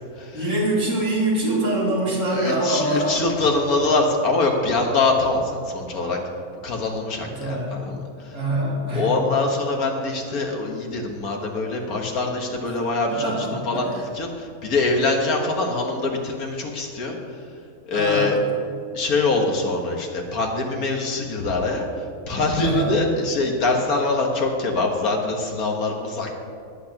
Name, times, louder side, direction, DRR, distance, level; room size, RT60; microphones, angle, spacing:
voice 1, 0.3-3.2 7.2-7.8 8.3-9.2 12.6-12.8 13.1-14.0 17.9-18.4 22.6-22.9, right 1 dB, 75° right, -7 dB, 3.3 m, -24 dB
voice 2, 2.4-6.2 6.6-8.0 9.0-17.2 17.9-18.4 18.9-21.9 22.3-26.4, left 3 dB, 70° left, 1 dB, 1.8 m, -23 dB
19.5 x 8.5 x 2.9 m, 2.4 s
omnidirectional pair, 1.6 m